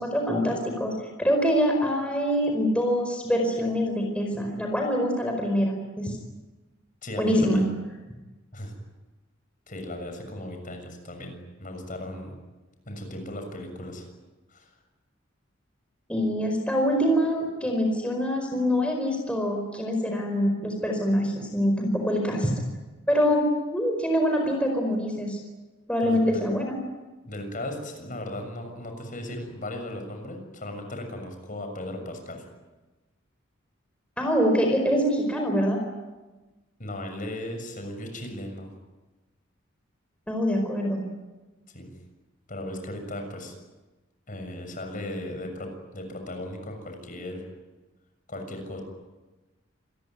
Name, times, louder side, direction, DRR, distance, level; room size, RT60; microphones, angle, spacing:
voice 1, 0.0-6.2 7.2-7.6 16.1-22.5 23.1-25.4 25.9-26.7 34.2-35.8 40.3-41.0, equal, 5° left, 2 dB, 4.9 m, -25 dB
voice 2, 7.0-7.7 8.5-8.7 9.7-12.4 12.9-14.0 14.5-14.7 26.0-26.4 27.2-32.4 36.8-38.7 41.7-42.0 42.5-43.5 44.3-47.4 48.3-48.8, left 1 dB, 40° left, 5 dB, 6.8 m, -36 dB
27.5 x 21.5 x 9.7 m, 1.2 s
head